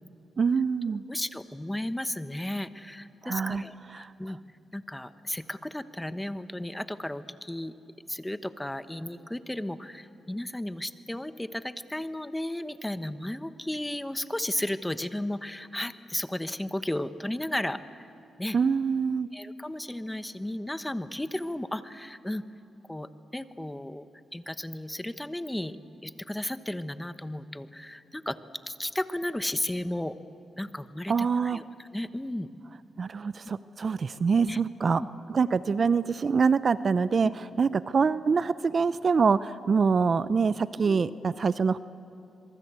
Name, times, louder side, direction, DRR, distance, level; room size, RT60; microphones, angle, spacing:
voice 1, 0.4-1.0 3.2-3.6 18.5-19.3 31.1-31.6 33.0-35.0 35.3-37.3 37.6-41.8, right 5 dB, 45° right, 16 dB, 0.6 m, -25 dB
voice 2, 1.1-4.4 4.7-7.7 8.1-18.1 18.4-18.6 19.3-22.4 22.9-25.8 26.0-28.4 28.6-30.1 30.6-32.5 34.4-34.6 34.9-35.1 37.2-37.3 40.8-41.2, left 1 dB, 10° left, 12 dB, 1.1 m, -34 dB
25.0 x 23.0 x 8.2 m, 2.6 s
cardioid pair, 75°, 0 cm